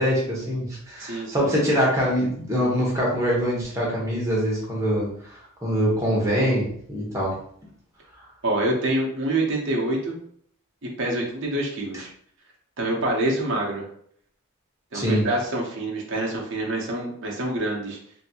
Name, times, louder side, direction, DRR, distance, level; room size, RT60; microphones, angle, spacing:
voice 1, 0.0-7.3 14.9-15.2, equal, 15° right, -5 dB, 0.9 m, -24 dB
voice 2, 1.0-1.5 8.4-10.2 11.0-12.1 12.8-13.8 14.9-18.0, right 1 dB, 55° right, -2 dB, 0.8 m, -26 dB
2.8 x 2.7 x 2.8 m, 0.63 s
head